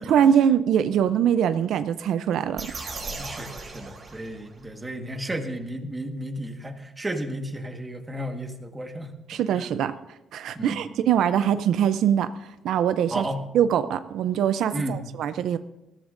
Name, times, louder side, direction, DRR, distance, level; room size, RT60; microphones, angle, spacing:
voice 1, 0.1-2.7 9.3-9.9 10.3-12.3 12.6-13.3 13.5-15.6, right 9 dB, 75° right, 11 dB, 0.5 m, -22 dB
sound 1, 2.6-4.7, right 3 dB, 35° right, 3.2 m, -37 dB
voice 2, 3.1-9.1 9.6-9.7 10.5-10.8 13.1-13.4 14.7-15.0, right 1 dB, 15° right, 4 dB, 1.4 m, -33 dB
20.5 x 14.0 x 2.6 m, 0.96 s
cardioid pair, 140°, 0 cm